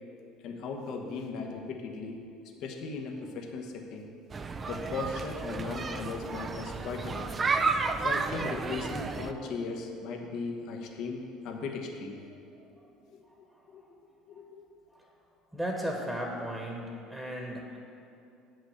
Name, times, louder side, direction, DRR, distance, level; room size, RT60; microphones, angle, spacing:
voice 1, 0.4-2.2 2.6-4.1 4.7-7.4 8.0-12.2 13.1-13.2 13.7-13.8 14.3-14.6, left 4 dB, 60° left, 3 dB, 1.1 m, -37 dB
sound 1, 4.3-9.3, right 4 dB, 30° right, 0.4 m, -32 dB
voice 2, 12.3-12.9 13.2-14.0 14.3-14.4 14.9-15.1 15.5-17.8, equal, 5° right, -1 dB, 1.3 m, -37 dB
8.2 x 6.2 x 6.5 m, 2.6 s
supercardioid pair, 105°, 0 cm